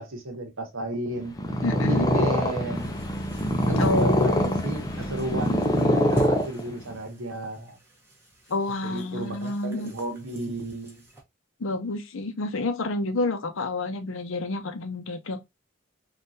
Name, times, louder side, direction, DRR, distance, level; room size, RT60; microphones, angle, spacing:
voice 1, 0.0-1.3 1.7-3.0 3.7-7.8 8.8-11.0, right 2 dB, 75° right, 1.1 m, -33 dB
Purr, 1.3-7.0, left 1 dB, 20° left, 0.4 m, -24 dB
voice 2, 1.6-2.1 3.8-4.6 8.5-9.9 11.6-15.4, left 2 dB, 75° left, 0.6 m, -29 dB
sound 1, 2.7-11.2, right 1 dB, 10° right, 0.8 m, -44 dB
3.7 x 2.4 x 2.6 m
head